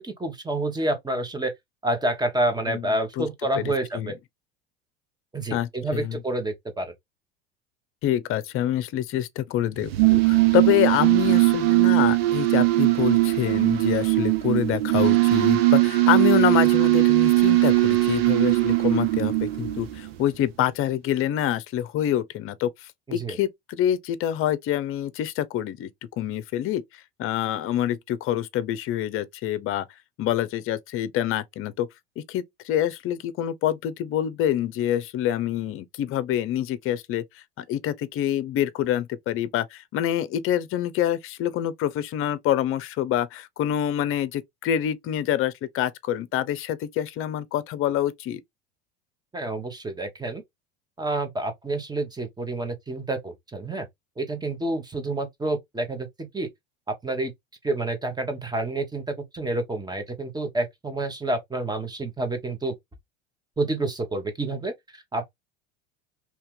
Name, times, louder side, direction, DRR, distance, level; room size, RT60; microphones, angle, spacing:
voice 1, 0.0-1.5 1.8-4.1 5.3-6.9 23.2-23.4 49.3-50.4 51.0-53.9 54.2-56.5 56.9-57.3 57.6-62.7 63.6-65.3, right 2 dB, 15° right, 1.2 m, -28 dB
voice 2, 3.5-4.1 5.5-6.2 8.0-26.8 27.2-29.9 30.2-31.9 32.2-37.2 37.6-48.4, left 11 dB, 45° left, 0.6 m, -26 dB
sound 1, 9.8-20.2, right 19 dB, 75° right, 0.8 m, -20 dB
2.9 x 2.8 x 3.6 m
hypercardioid pair, 80°, 30 cm